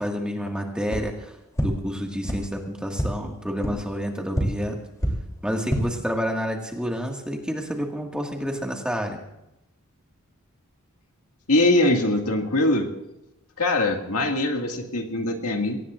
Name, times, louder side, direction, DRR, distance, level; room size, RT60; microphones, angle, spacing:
voice 1, 0.0-1.4 1.6-4.8 5.4-9.2, equal, 5° right, 1 dB, 1.8 m, -29 dB
sound 1, 0.9-1.0 1.5-1.7 2.2-2.4 2.9-3.1 3.6-3.7 4.3-4.4 5.0-5.1 5.5-5.8, equal, 15° left, 3.1 m, -25 dB
voice 2, 11.5-12.9 13.6-15.8, left 2 dB, 80° left, 2 dB, 2.0 m, -22 dB
23.0 x 18.5 x 2.5 m, 0.88 s
head